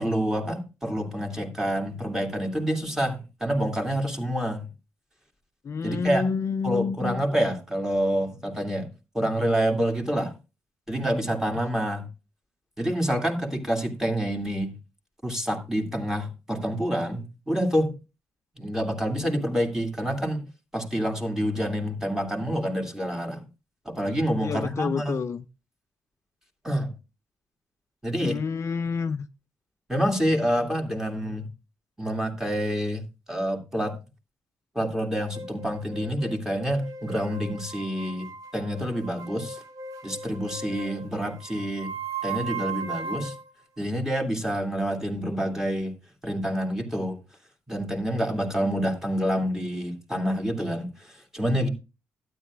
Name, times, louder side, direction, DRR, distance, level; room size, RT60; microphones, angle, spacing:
voice 1, 0.0-4.7 5.8-6.2 6.6-8.9 9.1-10.3 10.9-12.1 12.8-14.7 15.2-17.9 18.6-20.5 20.7-23.4 23.9-25.2 26.6-26.9 28.0-28.4 29.9-31.5 32.0-34.0 34.7-39.6 40.0-41.9 42.2-43.3 43.8-45.9 46.2-47.2 47.7-51.7, equal, 5° right, 2.4 m, -27 dB
voice 2, 5.6-7.2 24.4-25.4 28.2-29.3, left 5 dB, 45° left, 0.5 m, -28 dB
sound 1, 35.3-43.5, right 4 dB, 65° right, 1.2 m, -37 dB
12.0 x 9.6 x 2.4 m
hypercardioid pair, 50°, 7 cm